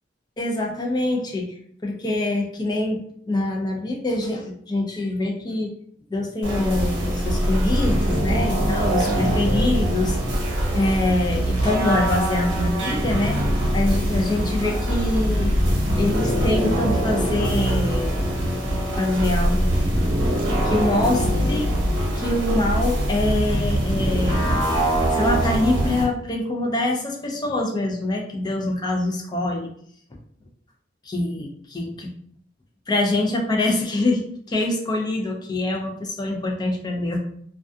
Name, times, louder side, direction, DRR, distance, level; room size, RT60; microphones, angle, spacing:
voice 1, 0.4-1.5 1.8-5.7 6.1-10.2 10.7-13.4 13.7-15.5 16.0-18.1 19.0-19.7 20.6-21.7 22.2-24.4 25.1-29.7 31.0-31.9 32.9-34.2 34.5-37.2, left 2 dB, 20° left, 1 dB, 0.4 m, -24 dB
sound 1, 6.4-26.0, right 1 dB, 75° right, 0.9 m, -22 dB
2.3 x 2.2 x 2.6 m, 0.65 s
head